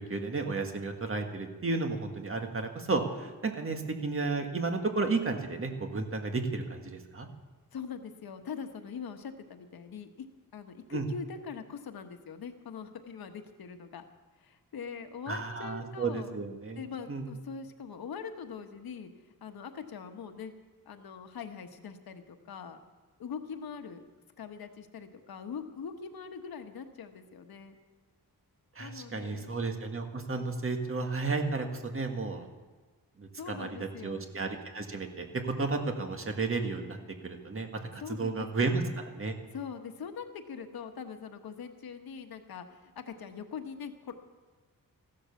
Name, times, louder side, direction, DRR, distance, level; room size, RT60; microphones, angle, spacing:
voice 1, 0.0-7.3 10.9-11.0 15.3-16.8 17.1-17.3 28.8-32.5 33.2-37.0 37.2-38.8 39.2-39.3, right 3 dB, 40° right, 4 dB, 1.7 m, -33 dB
voice 2, 7.7-10.3 10.5-14.0 14.4-16.3 16.8-20.5 20.8-22.8 23.2-24.0 24.4-27.8 28.8-29.5 33.3-34.3 38.0-38.9 39.5-44.3, left 6 dB, 85° left, 7 dB, 1.3 m, -42 dB
15.0 x 12.0 x 7.1 m, 1.3 s
wide cardioid pair, 135°, 35 cm